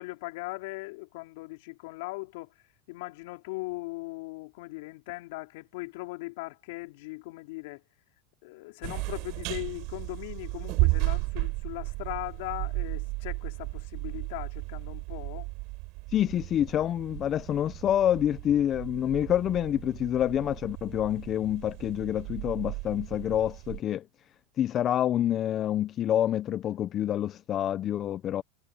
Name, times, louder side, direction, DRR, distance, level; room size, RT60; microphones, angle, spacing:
voice 1, 0.0-2.5 2.9-7.8 8.4-15.5, left 24 dB, 70° left, 4.7 m, -39 dB
sound 1, 8.8-23.8, right 26 dB, 55° right, 7.3 m, -34 dB
voice 2, 16.1-24.1 24.6-28.4, left 11 dB, 35° left, 0.8 m, -27 dB
supercardioid pair, 115°, 0 cm